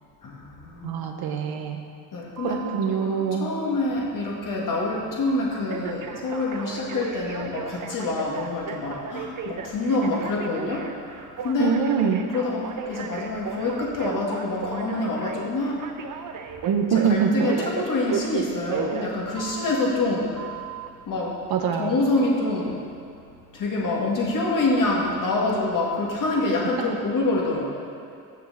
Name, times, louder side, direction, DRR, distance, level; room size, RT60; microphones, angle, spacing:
voice 1, 0.2-1.0 2.1-2.6 2.9-3.0 3.4-11.7 12.3-15.8 17.1-20.5 21.1-21.3 21.8-22.8 23.5-27.6, left 2 dB, 60° left, -3 dB, 2.1 m, -26 dB
voice 2, 0.8-1.8 2.4-3.5 11.6-12.2 16.7-17.5 21.5-22.0 26.8-26.9, right 6 dB, 80° right, 4 dB, 1.0 m, -24 dB
Telephone, 2.4-2.9 5.7-19.9 20.4-20.9, right 6 dB, 55° right, 0.8 m, -34 dB
7.3 x 6.6 x 6.8 m, 2.4 s
cardioid pair, 90°, 37 cm